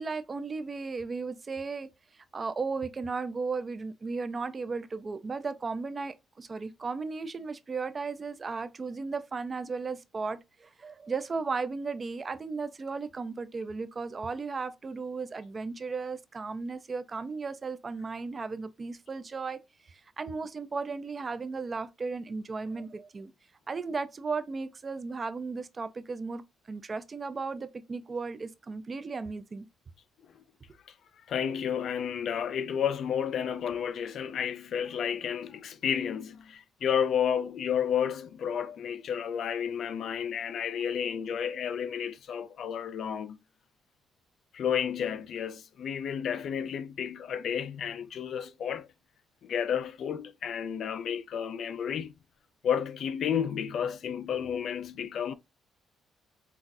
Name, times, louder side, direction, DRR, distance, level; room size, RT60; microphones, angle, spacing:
voice 1, 0.0-1.9 2.1-19.6 19.9-23.3 23.7-26.4 26.7-29.7, right 4 dB, 35° right, 0.5 m, -35 dB
voice 2, 31.3-43.4 44.5-48.9 49.4-52.1 52.6-55.3, left 8 dB, 65° left, 0.4 m, -31 dB
5.8 x 2.4 x 2.6 m
cardioid pair, 95°, 0 cm